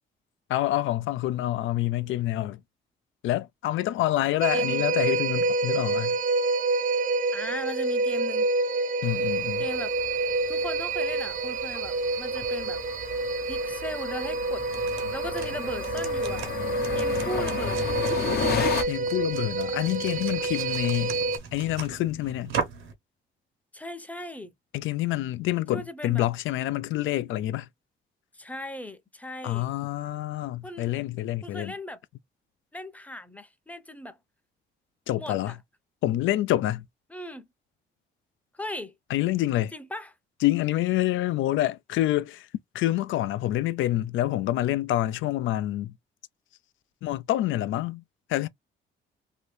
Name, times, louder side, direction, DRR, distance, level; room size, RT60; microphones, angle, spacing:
voice 1, 0.5-2.6 3.2-6.2 9.0-9.6 18.9-21.2 21.5-22.5 24.7-27.7 29.4-31.7 35.1-35.5 36.0-36.8 39.1-39.7 40.4-42.5 42.7-45.9 47.0-48.0 48.3-48.5, left 14 dB, 75° left, 0.4 m, -27 dB
sound 1, 4.4-21.4, right 3 dB, 40° right, 0.6 m, -28 dB
voice 2, 4.5-4.8 7.3-8.5 9.6-9.9 10.5-12.8 13.4-14.6 15.1-16.5 16.9-17.9 18.4-18.8 23.7-24.5 25.7-26.3 28.3-29.7 30.6-30.9 31.4-32.0 32.7-34.2 35.2-35.6 37.1-37.5 38.5-38.9 39.7-40.2, left 1 dB, 5° left, 0.6 m, -38 dB
sound 2, 9.0-18.8, left 7 dB, 55° left, 0.8 m, -34 dB
sound 3, 14.6-22.9, right 6 dB, 80° right, 1.1 m, -39 dB
2.8 x 2.6 x 3.1 m
cardioid pair, 90°, 20 cm